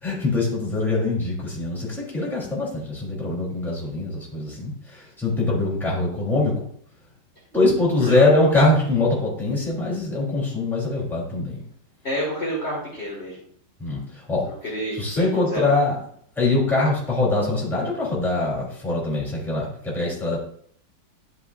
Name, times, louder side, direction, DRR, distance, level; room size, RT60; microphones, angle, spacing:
voice 1, 0.0-6.7 7.5-11.6 13.8-14.5 14.9-16.0 16.4-20.4, left 2 dB, ahead, -6 dB, 2.9 m, -23 dB
voice 2, 8.0-8.5 12.0-13.5 14.5-15.7, equal, 30° left, -5 dB, 1.8 m, -29 dB
11.5 x 5.4 x 2.4 m, 0.62 s
omnidirectional pair, 2.4 m